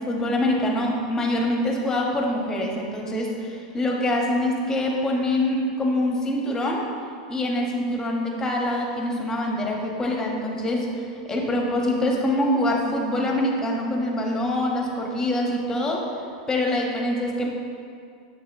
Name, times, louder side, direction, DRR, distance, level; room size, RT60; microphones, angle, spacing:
voice 1, 0.0-6.8 7.3-16.1 16.5-17.5, left 1 dB, 15° left, 0 dB, 0.9 m, -25 dB
6.8 x 6.8 x 2.6 m, 2.4 s
supercardioid pair, 130°, 4 cm